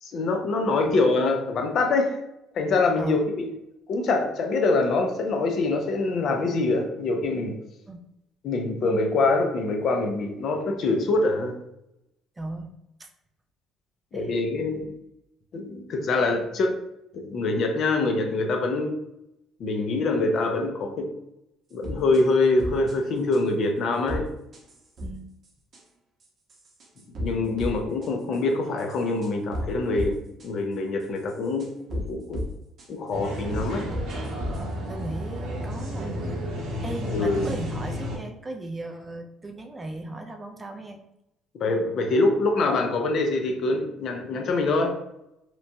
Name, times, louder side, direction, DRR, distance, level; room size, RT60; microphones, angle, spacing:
voice 1, 0.0-2.2 2.5-3.5 3.9-7.6 8.4-11.6 14.1-14.9 15.5-16.8 17.1-19.0 19.6-21.1 21.7-24.3 27.2-32.5 32.9-33.9 37.1-37.5 41.5-45.0, left 3 dB, 55° left, 4 dB, 0.5 m, -24 dB
voice 2, 12.4-12.7 13.0-13.1 14.1-14.3 25.0-25.3 34.9-36.4 36.8-41.0, right 2 dB, 15° right, 4 dB, 0.3 m, -36 dB
sound 1, 21.8-22.2 22.6-23.0 23.3-23.4 24.1-24.2 24.5-25.1 25.4-25.8 26.2-27.3 27.6-27.8 28.0-28.4 28.8-30.1 30.4-30.5 31.0-32.1 32.3-32.5 32.8-32.9 33.5-34.6, left 1 dB, 40° right, 0.7 m, -33 dB
sound 2, 33.1-38.2, equal, 65° right, 0.9 m, -32 dB
2.9 x 2.2 x 2.6 m, 0.84 s
cardioid pair, 120°, 0 cm